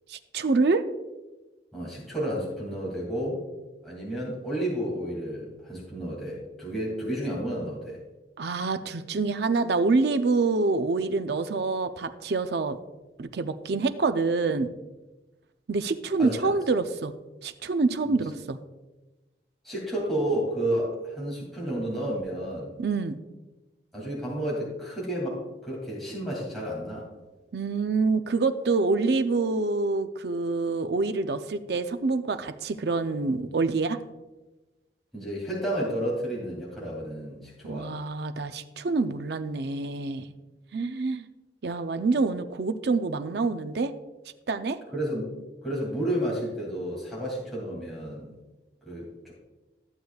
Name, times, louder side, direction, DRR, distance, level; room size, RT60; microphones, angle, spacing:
voice 1, 0.1-0.8 8.4-12.8 13.2-14.7 15.7-17.1 17.4-18.6 22.8-23.2 27.5-34.0 37.7-40.3 40.7-41.3 41.6-43.9 44.5-44.8, right 3 dB, 65° right, 10 dB, 0.5 m, -26 dB
voice 2, 1.7-3.4 3.8-8.0 16.2-16.5 18.1-18.2 19.6-22.7 23.9-27.1 35.1-38.0 44.9-45.3 45.6-48.3 48.9-49.3, right 1 dB, ahead, -6 dB, 2.4 m, -31 dB
13.5 x 7.9 x 2.3 m, 1.1 s
head